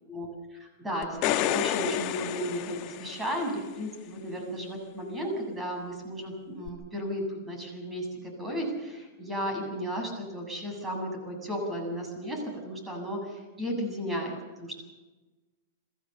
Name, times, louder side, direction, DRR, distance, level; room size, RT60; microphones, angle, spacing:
voice 1, 0.1-14.8, equal, 15° right, 3 dB, 7.6 m, -34 dB
sound 1, 1.0-3.6 6.7-6.8, left 13 dB, 45° left, 1.2 m, -30 dB
26.5 x 14.5 x 6.9 m, 1.2 s
hypercardioid pair, 115°, 0 cm